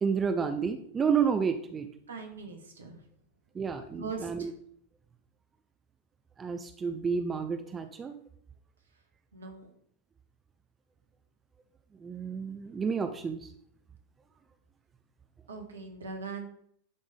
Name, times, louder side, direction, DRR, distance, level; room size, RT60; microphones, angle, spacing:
voice 1, 0.0-1.9 3.5-4.5 6.4-8.1 11.9-13.5, right 6 dB, 20° right, 8 dB, 0.4 m, -30 dB
voice 2, 2.1-3.0 4.0-4.5 9.3-9.7 15.5-16.5, right 4 dB, 70° right, 4 dB, 1.1 m, -40 dB
10.5 x 3.6 x 3.3 m, 0.68 s
figure-of-eight pair, 90°, 0 cm